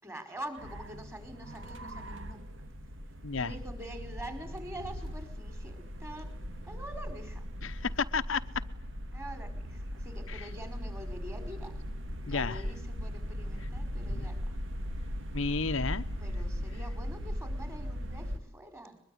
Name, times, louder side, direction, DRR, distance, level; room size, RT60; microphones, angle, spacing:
voice 1, 0.0-2.5 3.3-6.3 6.6-7.5 9.1-11.8 12.2-14.6 16.2-19.0, right 1 dB, 15° right, 7 dB, 4.9 m, -45 dB
sound 1, 0.6-18.4, equal, 75° right, 2.3 m, -38 dB
voice 2, 7.6-8.4 10.3-10.4 12.3-12.6 14.1-14.3 15.3-16.0, left 4 dB, 85° left, 9 dB, 1.0 m, -32 dB
23.0 x 22.0 x 9.9 m, 0.75 s
head